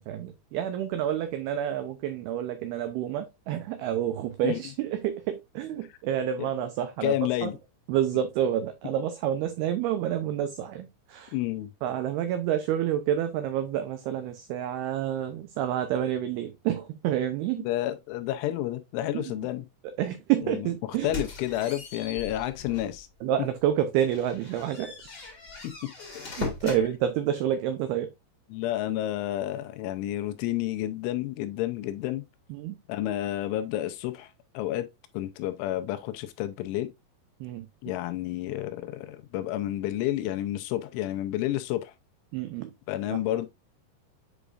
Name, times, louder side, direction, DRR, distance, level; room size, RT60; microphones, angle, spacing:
voice 1, 0.0-7.5 7.9-11.3 11.8-17.7 19.1-19.4 20.0-21.2 23.2-25.0 26.4-28.1 32.5-32.8 37.4-37.7 42.3-42.7 43.1-43.2, right 10 dB, 90° right, 2.2 m, -29 dB
voice 2, 7.0-7.6 11.3-11.7 17.6-19.6 21.0-23.1 26.1-26.3 26.6-26.7 28.5-32.2 32.9-34.3 34.5-34.9 35.1-36.9 37.8-41.9 42.9-43.5, left 14 dB, 90° left, 3.2 m, -30 dB
sound 1, 20.9-23.0 23.5-23.6 24.0-26.8, left 3 dB, 50° left, 1.2 m, -39 dB
8.1 x 5.0 x 2.4 m
omnidirectional pair, 5.3 m